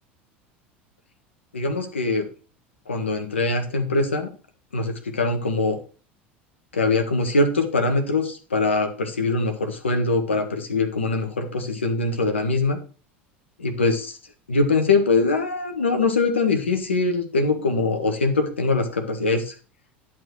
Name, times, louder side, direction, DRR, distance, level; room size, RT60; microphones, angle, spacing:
voice 1, 1.5-2.3 2.9-4.3 4.7-5.8 6.7-12.8 13.6-14.2 14.5-19.5, left 3 dB, 90° left, 5 dB, 1.7 m, -22 dB
11.0 x 4.4 x 6.4 m, 0.37 s
hypercardioid pair, 80°, 6 cm